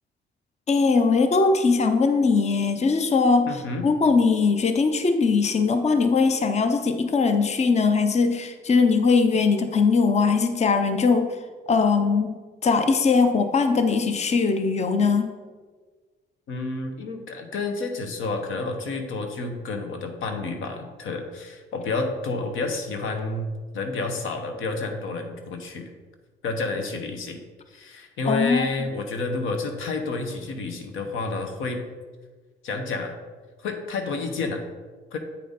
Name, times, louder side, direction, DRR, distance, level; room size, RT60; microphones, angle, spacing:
voice 1, 0.7-11.4 11.7-12.4 12.6-15.3 28.3-28.7, left 4 dB, 35° left, 8 dB, 0.6 m, -20 dB
voice 2, 3.5-3.9 16.5-25.9 26.4-27.4 27.7-31.8 32.6-33.2 33.6-34.6 35.1-35.2, left 3 dB, 85° left, 5 dB, 1.0 m, -30 dB
8.5 x 5.0 x 4.0 m, 1.4 s
cardioid pair, 90°, 20 cm